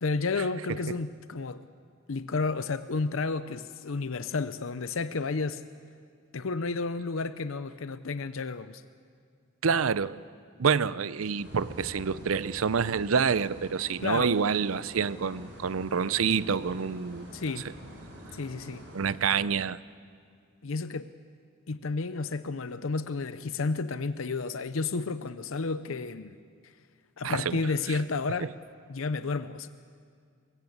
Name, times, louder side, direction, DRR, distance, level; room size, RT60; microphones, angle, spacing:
voice 1, 0.0-1.6 2.1-5.6 6.3-8.8 14.0-14.3 17.3-17.7 18.3-18.8 20.6-21.1 21.7-26.4 26.6-26.7 27.2-28.5 28.9-29.7, left 4 dB, 80° left, 12 dB, 0.7 m, -31 dB
voice 2, 9.6-10.2 10.6-17.3 18.9-19.8 27.2-27.6 27.9-28.0 28.4-28.5, right 6 dB, 90° right, 17 dB, 0.6 m, -27 dB
sound 1, 11.4-19.1, equal, 65° right, 7.2 m, -46 dB
23.5 x 21.5 x 8.0 m, 2.2 s
head